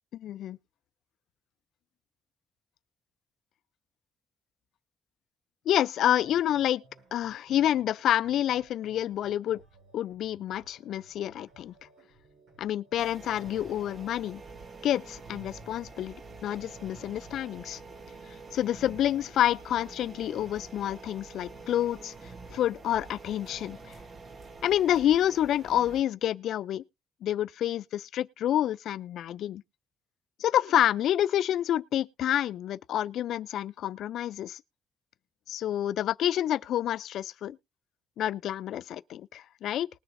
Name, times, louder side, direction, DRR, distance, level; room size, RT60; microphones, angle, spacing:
voice 1, 0.1-0.6 5.7-6.8 7.1-9.6 9.9-11.7 12.6-14.4 14.8-16.1 16.4-17.8 18.5-22.1 22.5-23.8 24.6-26.8 27.2-29.6 30.4-34.6 35.5-37.6 38.2-39.9, left 11 dB, 75° left, 0.4 m, -28 dB
sound 1, 6.0-24.6, right 2 dB, 75° right, 7.5 m, -59 dB
sound 2, 13.0-26.0, right 4 dB, 40° right, 1.1 m, -47 dB
20.0 x 6.9 x 2.6 m
cardioid pair, 120°, 0 cm